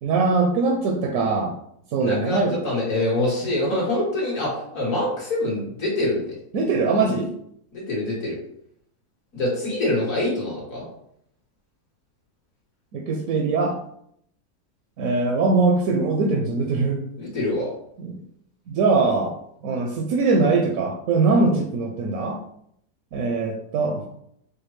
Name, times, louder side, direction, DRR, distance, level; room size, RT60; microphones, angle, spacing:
voice 1, 0.0-1.5 1.9-2.6 6.5-7.3 12.9-13.8 15.0-17.0 18.0-18.2 18.7-19.3 19.6-22.4 23.1-24.0, right 3 dB, 70° right, 1 dB, 0.9 m, -22 dB
voice 2, 2.0-6.2 7.7-8.4 9.3-10.8 17.2-17.7, left 1 dB, 55° left, -4 dB, 1.6 m, -25 dB
4.9 x 2.1 x 3.1 m, 0.71 s
omnidirectional pair, 1.8 m